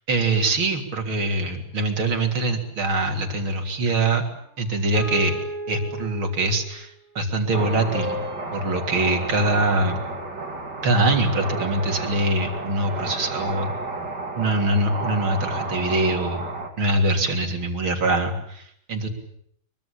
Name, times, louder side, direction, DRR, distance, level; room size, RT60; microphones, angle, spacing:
voice 1, 0.1-4.2 4.6-5.4 5.7-8.2 8.5-10.0 10.8-13.8 14.4-16.5 16.8-19.1, right 2 dB, 80° right, 5 dB, 4.2 m, -23 dB
sound 1, 3.0-3.7 4.9-6.7 7.9-10.4, equal, 55° left, 8.2 m, -35 dB
sound 2, 7.5-16.7, right 3 dB, 55° right, 4.0 m, -31 dB
24.5 x 23.5 x 8.7 m, 0.68 s
omnidirectional pair, 2.2 m